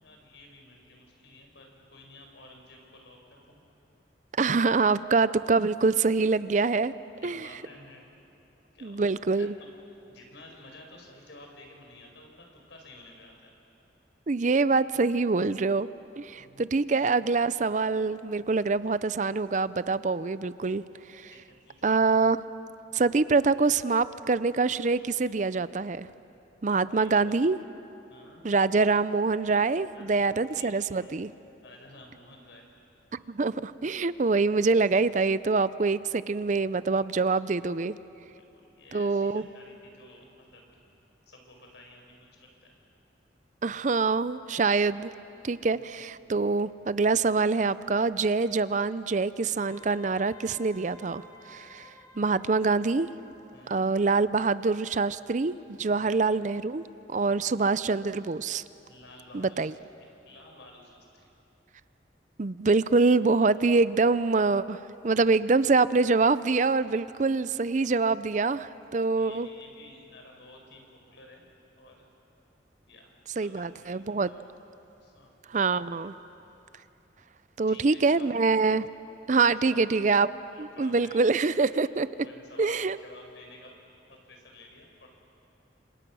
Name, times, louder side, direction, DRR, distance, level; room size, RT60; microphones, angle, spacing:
voice 1, 0.0-3.5 7.2-8.0 8.7-9.1 9.3-13.5 16.4-16.9 21.3-21.9 26.8-27.1 28.1-28.5 29.9-31.1 31.6-32.7 37.2-37.3 38.3-40.8 41.2-42.7 45.7-45.9 52.2-52.3 53.5-53.9 55.9-56.3 57.3-57.6 58.9-59.7 60.3-61.3 68.3-68.4 69.0-71.4 71.8-72.1 72.9-74.0 74.3-74.5 75.0-75.7 76.1-76.3 77.7-78.3 79.4-80.0 80.5-81.6 82.2-83.8 84.1-85.1, left 2 dB, 90° left, 1 dB, 5.3 m, -52 dB
voice 2, 4.4-6.9 7.2-7.5 8.8-9.5 14.3-15.9 16.2-20.8 21.1-21.3 21.8-22.4 22.9-26.1 26.6-27.6 28.4-31.3 33.3-37.9 38.9-39.4 43.6-45.1 45.4-51.2 51.5-53.1 53.7-56.8 57.1-58.6 59.3-59.7 62.4-69.5 73.4-74.3 75.5-76.1 77.6-78.9 79.3-80.3 80.6-82.1 82.6-83.0, right 4 dB, 45° right, 15 dB, 0.5 m, -25 dB
Wind instrument woodwind instrument, 49.6-53.8, left 2 dB, 25° left, 3.6 m, -53 dB
29.5 x 26.5 x 6.3 m, 3.0 s
head